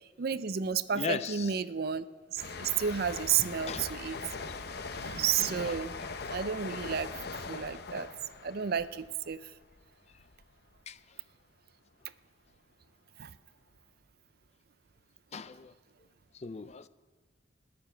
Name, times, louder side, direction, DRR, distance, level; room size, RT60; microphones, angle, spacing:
voice 1, 0.2-2.0 2.3-4.2 5.0-6.0 6.3-8.1 8.4-9.5 13.2-13.3, right 7 dB, 55° right, 15 dB, 0.5 m, -32 dB
voice 2, 0.9-1.6 3.4-3.9 4.5-4.6 6.7-6.8 7.5-7.6 10.9-11.0 15.3-15.7 16.3-16.9, left 5 dB, 35° left, 14 dB, 0.4 m, -38 dB
sound 1, 2.4-9.8 10.1-10.4, left 4 dB, 55° left, 0.8 m, -41 dB
19.5 x 6.8 x 9.2 m, 1.4 s
head